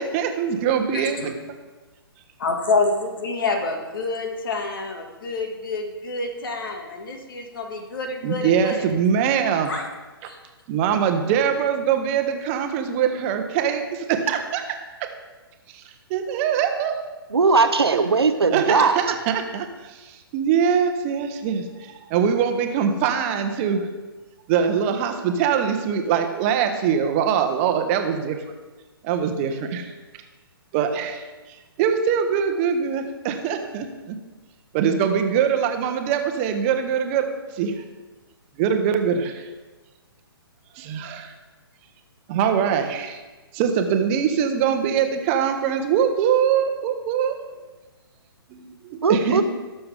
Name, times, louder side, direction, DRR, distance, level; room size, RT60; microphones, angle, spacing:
voice 1, 0.0-1.3 8.2-9.7 10.2-10.3 10.7-14.6 15.7-15.8 16.1-16.9 18.5-23.9 24.5-28.4 29.0-29.9 30.7-31.3 31.8-34.1 34.7-37.3 37.5-37.8 38.6-39.5 40.8-41.3 42.3-43.2 43.5-47.4 48.5-49.4, right 7 dB, 30° right, 6 dB, 1.1 m, -23 dB
voice 2, 0.9-1.3 2.4-8.9 9.7-9.9 10.2-10.4, left 3 dB, 60° left, 3 dB, 2.1 m, -27 dB
voice 3, 17.3-19.0 49.0-49.4, right 4 dB, 80° right, 9 dB, 0.9 m, -19 dB
17.5 x 6.9 x 3.6 m, 1.2 s
figure-of-eight pair, 130°, 13 cm